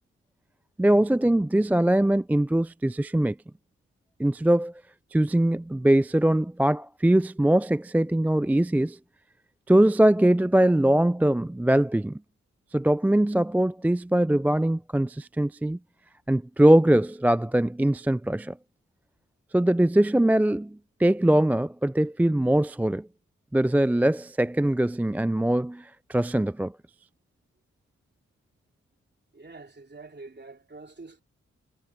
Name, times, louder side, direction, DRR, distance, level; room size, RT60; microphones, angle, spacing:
voice 1, 0.8-3.4 4.2-4.7 5.1-9.0 9.7-12.2 12.7-15.8 16.3-18.6 19.5-23.1 23.5-26.7, right 1 dB, 5° right, 0.3 m, -22 dB
voice 2, 29.3-31.2, right 3 dB, 35° right, 3.5 m, -45 dB
cardioid pair, 45°, 30 cm